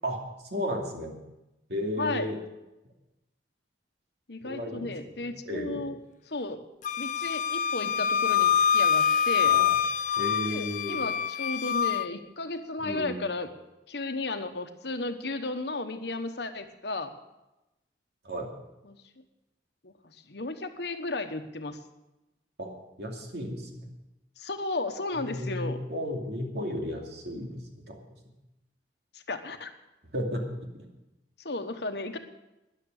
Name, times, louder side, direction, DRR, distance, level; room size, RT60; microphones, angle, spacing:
voice 1, 0.5-1.2 1.7-2.4 4.4-4.9 5.2-5.8 9.5-9.7 10.2-11.0 12.8-13.2 18.2-18.5 22.6-22.7 23.0-23.8 25.2-27.6 27.9-28.1 30.1-30.4 30.7-30.9, equal, 65° right, 1 dB, 2.6 m, -33 dB
voice 2, 2.0-2.3 4.3-5.9 6.3-6.6 7.0-9.6 10.4-13.5 13.9-17.1 18.8-19.0 19.8-21.8 24.4-25.8 29.1-29.7 31.4-32.2, left 2 dB, 65° left, 7 dB, 1.2 m, -34 dB
Wind instrument woodwind instrument, 6.8-12.1, left 8 dB, 45° left, 0.4 m, -25 dB
13.0 x 10.5 x 6.5 m, 0.96 s
head